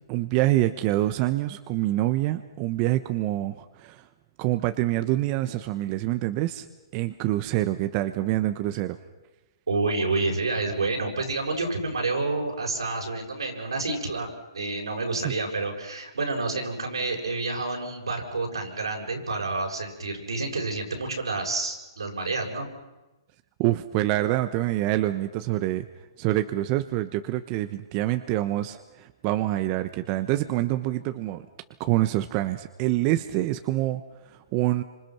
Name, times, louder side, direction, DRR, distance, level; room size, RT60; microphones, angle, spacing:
voice 1, 0.1-4.1 4.4-6.7 6.9-9.0 15.2-15.3 23.6-25.9 26.2-31.5 31.8-34.8, right 15 dB, 35° right, 10 dB, 1.1 m, -26 dB
voice 2, 9.7-14.3 14.5-22.7, right 3 dB, 90° right, 1 dB, 7.0 m, -29 dB
28.5 x 26.0 x 6.1 m, 1.1 s
hypercardioid pair, 130°, 3 cm